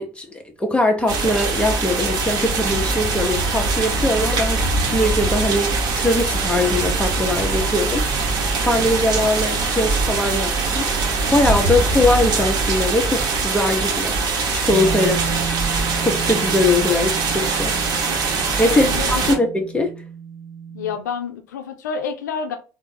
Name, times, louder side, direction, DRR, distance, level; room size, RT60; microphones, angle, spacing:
voice 1, 0.0-8.0 8.4-11.0 11.3-14.2 14.5-15.2 16.0-17.7 18.6-19.9, left 1 dB, 10° left, 0.7 m, -21 dB
sound 1, 1.1-19.3, right 3 dB, 45° right, 0.9 m, -22 dB
Bass guitar, 14.7-20.9, right 7 dB, 80° right, 0.6 m, -32 dB
voice 2, 15.0-15.4 18.7-19.4 20.7-22.6, left 6 dB, 70° left, 0.6 m, -29 dB
3.5 x 2.1 x 3.8 m
figure-of-eight pair, 60°, 10 cm